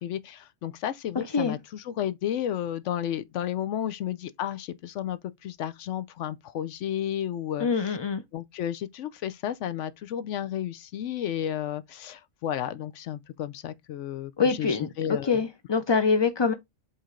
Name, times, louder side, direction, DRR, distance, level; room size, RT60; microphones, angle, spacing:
voice 1, 0.0-8.0 8.3-15.4, left 10 dB, 80° left, 0.9 m, -32 dB
voice 2, 7.6-8.2 14.4-14.9 15.3-16.5, left 5 dB, 40° left, 0.4 m, -24 dB
8.0 x 3.2 x 3.7 m
omnidirectional pair, 1.2 m